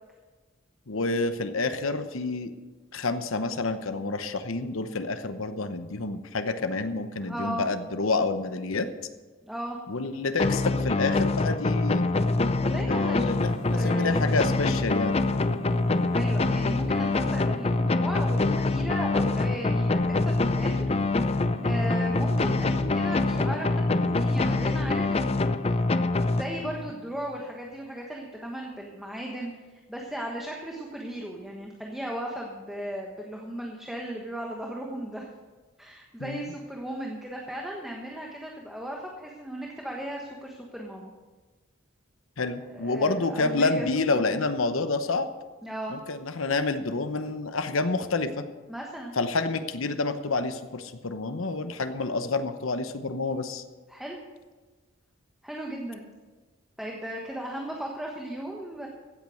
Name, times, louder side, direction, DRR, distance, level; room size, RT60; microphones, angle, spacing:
voice 1, 0.9-2.5 2.9-8.9 9.9-12.1 12.9-15.1 36.2-36.5 42.4-45.3 45.9-48.4 49.2-53.6, left 3 dB, 70° left, 9 dB, 0.9 m, -28 dB
voice 2, 7.2-7.7 9.4-9.8 12.6-13.4 13.7-14.1 16.1-25.5 26.3-35.3 35.8-41.1 42.7-43.9 45.6-45.9 48.7-49.1 53.9-54.2 55.4-56.0 56.8-58.9, right 1 dB, ahead, -1 dB, 1.2 m, -36 dB
sound 1, 10.4-26.9, left 2 dB, 30° left, 0.5 m, -25 dB
sound 2, 13.2-18.1 19.7-25.2 26.2-26.3 26.5-26.6, right 3 dB, 60° right, 0.9 m, -43 dB
15.5 x 8.7 x 6.4 m, 1.3 s
head